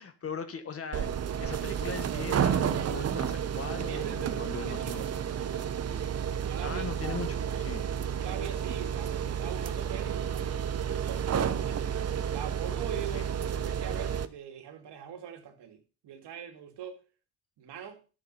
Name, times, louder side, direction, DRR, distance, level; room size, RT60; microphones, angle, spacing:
voice 1, 0.0-5.0 6.6-7.8 13.1-13.2, left 6 dB, 35° left, 1.5 m, -40 dB
sound 1, 0.9-14.3, right 8 dB, 40° right, 0.9 m, -31 dB
voice 2, 3.9-6.9 8.1-11.3 11.6-11.9 12.3-17.0 17.6-18.0, right 9 dB, 85° right, 2.5 m, -43 dB
13.0 x 7.1 x 5.6 m
cardioid pair, 170°, 40 cm